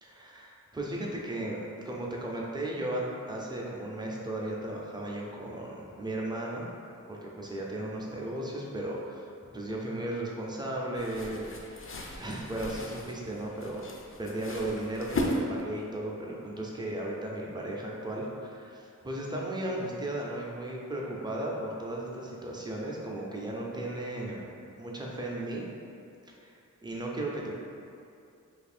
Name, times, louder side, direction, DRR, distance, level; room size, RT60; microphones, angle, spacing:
voice 1, 0.0-6.7 7.1-9.3 9.5-11.5 12.2-13.9 14.2-25.7 26.4-27.6, right 1 dB, 15° right, -3 dB, 0.5 m, -35 dB
sound 1, 11.0-15.9, left 1 dB, 40° left, 0.4 m, -36 dB
2.7 x 2.5 x 4.2 m, 2.5 s
wide cardioid pair, 80°, 33 cm